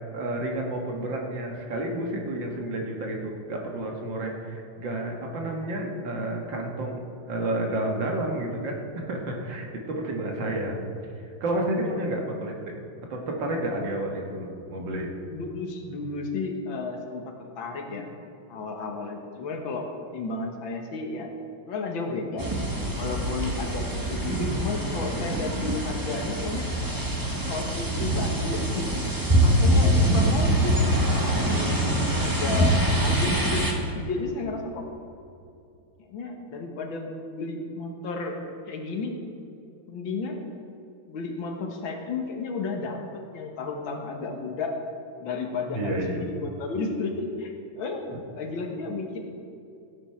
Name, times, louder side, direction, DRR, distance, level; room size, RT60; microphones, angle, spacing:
voice 1, 0.1-10.8 11.2-12.7 13.1-15.1 45.7-46.3 48.1-48.2, right 1 dB, 60° right, 1 dB, 2.1 m, -30 dB
voice 2, 11.7-12.2 15.2-17.2 17.6-18.1 18.5-19.9 20.1-21.3 21.7-22.4 23.0-26.7 27.4-30.8 31.3-32.7 33.0-34.8 36.0-38.4 38.7-39.2 39.9-40.4 41.1-44.8 45.2-48.0 48.3-49.2, left 3 dB, 70° left, 3 dB, 1.9 m, -33 dB
sound 1, 22.4-33.7, right 1 dB, 15° right, 0.9 m, -24 dB
15.5 x 8.6 x 4.4 m, 2.7 s
omnidirectional pair, 2.3 m